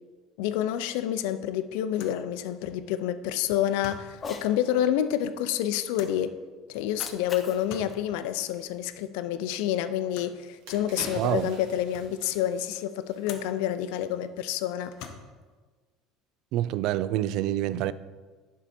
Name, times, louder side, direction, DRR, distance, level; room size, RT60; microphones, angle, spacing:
voice 1, 0.4-6.4 6.7-14.9, left 11 dB, 85° left, 0.5 m, -28 dB
sound 1, 0.6-0.9 1.2-1.3 1.9-2.3 3.6-4.2 5.9-6.3 7.5-8.0 10.1-10.4 11.2-11.3 11.7-12.2 13.2-13.6 14.8-15.5, left 7 dB, 70° left, 0.9 m, -46 dB
Cat, 4.1-4.5 6.7-9.1, left 4 dB, 25° left, 0.7 m, -43 dB
sound 2, 10.0-10.1 10.4-13.7 14.0-14.2, right 3 dB, 85° right, 2.1 m, -45 dB
voice 2, 11.2-11.5 16.5-17.9, right 13 dB, 60° right, 0.3 m, -27 dB
11.0 x 4.6 x 4.3 m
cardioid pair, 150°, 0 cm